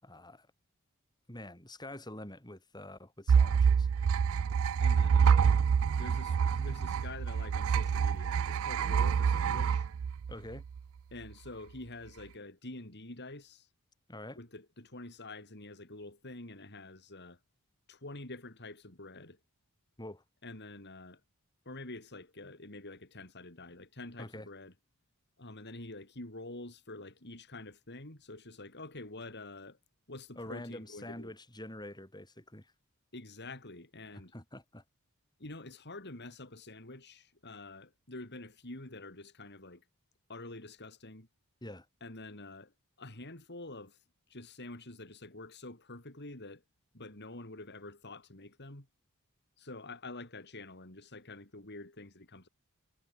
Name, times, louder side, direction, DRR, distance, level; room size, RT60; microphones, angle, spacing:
voice 1, 0.0-0.5 1.3-3.9 10.3-10.6 14.1-14.4 20.0-20.2 24.2-24.5 30.4-32.7 34.3-34.8 41.6-41.9, left 1 dB, 20° left, 6.3 m, -46 dB
sound 1, 3.3-10.8, right 6 dB, 65° right, 0.4 m, -27 dB
voice 2, 4.8-5.5 5.9-9.9 11.1-13.7 14.4-17.4 17.9-19.4 20.4-21.2 21.6-24.7 25.4-29.8 30.1-31.3 33.1-34.3 35.4-39.8 40.3-41.3 42.0-44.0 44.3-46.6 46.9-48.9 49.6-52.5, left 2 dB, 50° left, 4.6 m, -47 dB
head